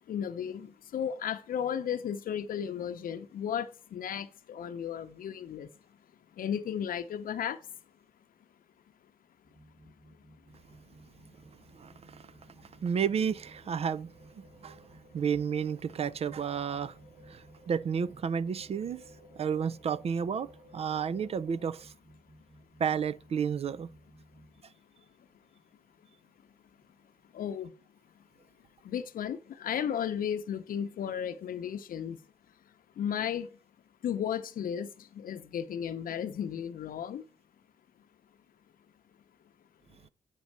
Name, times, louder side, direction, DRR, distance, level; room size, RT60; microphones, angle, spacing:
voice 1, 0.1-5.7 6.3-7.6 27.3-27.7 28.8-32.2 33.0-33.5 34.0-37.2, left 8 dB, 85° left, 0.7 m, -34 dB
sound 1, 9.4-24.6, right 1 dB, 10° right, 1.2 m, -58 dB
voice 2, 11.8-12.2 12.8-14.1 14.4-14.8 15.1-17.0 17.3-19.0 19.4-21.9 22.8-23.9, right 7 dB, 45° right, 0.4 m, -31 dB
sound 2, 13.2-21.8, right 1 dB, 80° right, 2.8 m, -58 dB
8.1 x 5.3 x 6.0 m
wide cardioid pair, 140°, 14 cm